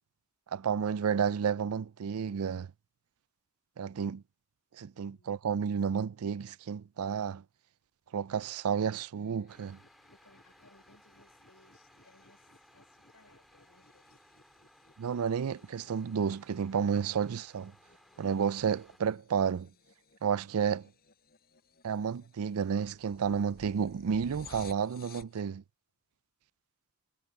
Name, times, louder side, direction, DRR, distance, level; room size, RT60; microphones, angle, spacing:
voice 1, 0.5-2.7 3.8-4.2 4.8-7.4 8.1-9.8 15.0-17.7 18.2-19.7 20.2-20.9 21.8-25.6, right 7 dB, 90° right, 0.4 m, -31 dB
voice 2, 4.9-5.7 10.1-14.2 19.6-20.1, left 2 dB, 75° left, 5.3 m, -65 dB
sound 1, 9.1-25.4, left 4 dB, 45° left, 6.2 m, -58 dB
sound 2, 9.5-19.0, equal, ahead, 3.3 m, -62 dB
head